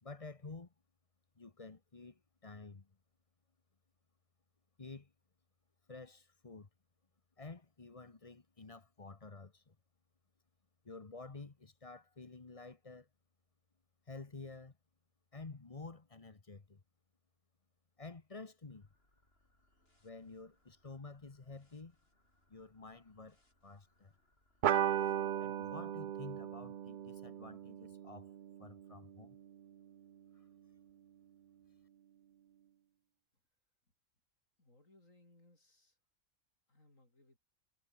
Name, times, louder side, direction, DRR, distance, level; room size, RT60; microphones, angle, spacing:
voice 1, 0.0-0.7 1.4-2.9 4.8-5.1 5.9-6.7 7.4-9.8 10.8-13.1 14.1-14.7 15.3-16.8 18.0-18.9 20.0-22.0 22.5-23.4 23.6-24.1 25.4-28.3 28.6-29.4, left 3 dB, 25° left, 1.1 m, -51 dB
sound 1, 18.7-25.1, left 1 dB, 45° left, 7.8 m, -75 dB
sound 2, 24.6-29.5, right 10 dB, 85° right, 0.4 m, -37 dB
voice 2, 34.6-36.0 36.7-37.4, left 2 dB, 65° left, 7.3 m, -66 dB
omnidirectional pair, 1.5 m